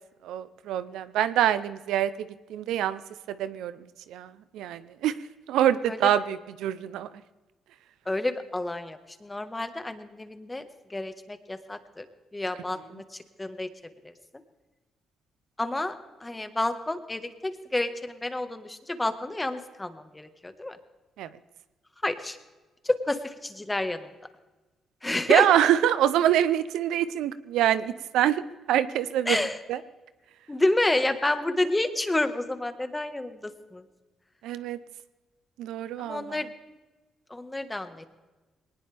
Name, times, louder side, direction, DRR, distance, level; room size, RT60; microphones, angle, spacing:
voice 1, 0.2-3.0 3.3-3.8 4.1-5.1 5.5-7.1 21.2-21.3 25.3-28.4 28.7-29.4 29.7-29.8 34.4-34.8 35.6-36.4, right 11 dB, 85° right, 14 dB, 0.7 m, -25 dB
voice 2, 8.0-10.6 10.9-12.0 12.3-13.0 13.4-13.7 14.0-14.1 15.6-15.9 16.2-20.8 22.0-22.4 22.8-24.1 25.0-25.5 29.3-29.6 30.5-33.8 36.0-36.5 37.3-38.1, left 2 dB, 15° left, 9 dB, 1.5 m, -29 dB
20.0 x 19.0 x 3.5 m, 1.2 s
cardioid pair, 80°, 0 cm